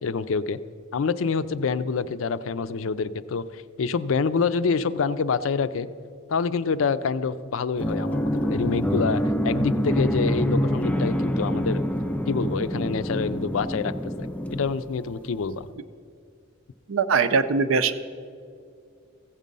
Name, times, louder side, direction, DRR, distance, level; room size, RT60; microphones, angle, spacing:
voice 1, 0.0-0.6 0.9-5.9 6.3-11.8 12.3-15.7, left 5 dB, 75° left, 14 dB, 0.4 m, -26 dB
sound 1, 7.8-15.3, equal, 5° left, 0.3 m, -26 dB
voice 2, 16.9-17.9, right 5 dB, 75° right, 11 dB, 0.6 m, -21 dB
15.0 x 7.4 x 5.3 m, 2.3 s
head